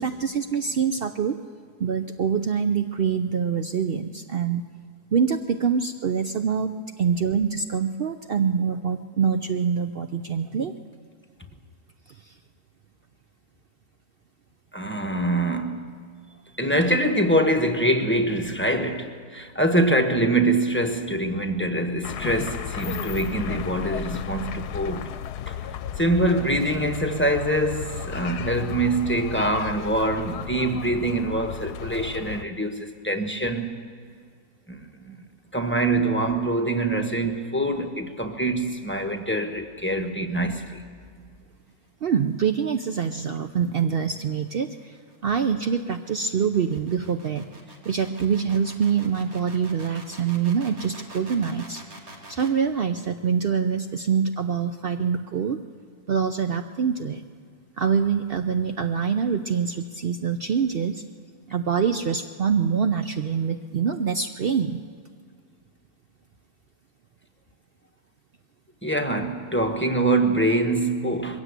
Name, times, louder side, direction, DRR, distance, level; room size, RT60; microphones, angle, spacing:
voice 1, 0.0-1.4 1.8-4.6 5.1-10.7 12.1-12.4 42.0-47.5 47.8-51.8 52.3-55.6 56.1-57.2 57.8-61.0 61.5-64.8, right 6 dB, 80° right, 8 dB, 0.5 m, -25 dB
voice 2, 14.7-15.9 16.6-25.1 25.5-25.6 26.0-33.7 34.7-35.1 35.5-40.8 68.8-71.4, right 1 dB, 10° left, 5 dB, 1.0 m, -24 dB
sound 1, 22.0-32.5, left 9 dB, 75° left, 1.2 m, -34 dB
sound 2, 43.3-52.6, right 1 dB, 60° right, 3.0 m, -46 dB
21.5 x 16.0 x 8.1 m, 2.1 s
omnidirectional pair, 1.8 m